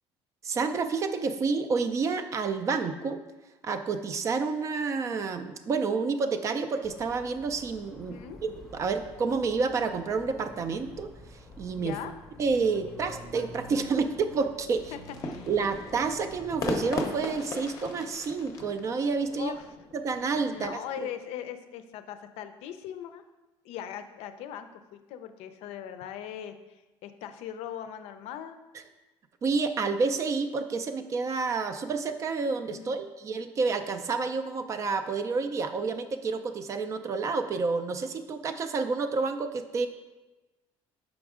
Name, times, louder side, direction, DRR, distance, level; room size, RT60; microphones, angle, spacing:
voice 1, 0.4-3.2 3.6-11.1 11.6-12.0 12.4-14.9 15.5-19.5 19.9-21.1 29.4-39.9, right 4 dB, 30° right, 9 dB, 0.3 m, -29 dB
sound 1, 6.8-16.8, left 1 dB, ahead, 0.7 m, -48 dB
voice 2, 8.0-8.4 11.8-12.1 14.9-15.5 19.3-19.7 20.5-23.2 23.6-28.6 32.7-33.0, left 9 dB, 80° left, 9 dB, 0.5 m, -40 dB
sound 2, 15.0-20.7, left 3 dB, 35° left, 0.6 m, -37 dB
6.1 x 4.9 x 3.6 m, 1.1 s
cardioid pair, 170°, 10 cm